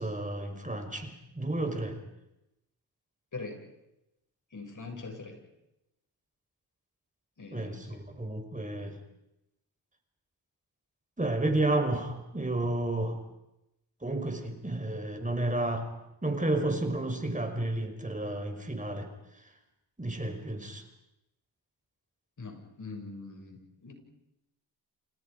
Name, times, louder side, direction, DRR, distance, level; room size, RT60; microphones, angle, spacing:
voice 1, 0.0-2.0 7.5-8.9 11.2-13.2 14.0-15.9 16.2-19.1 20.0-20.8, right 2 dB, 20° right, 5 dB, 5.2 m, -31 dB
voice 2, 4.5-5.4 7.4-8.0 22.4-23.9, left 3 dB, 45° left, 3 dB, 7.2 m, -43 dB
28.5 x 28.5 x 5.4 m, 0.89 s
cardioid pair, 60°, 41 cm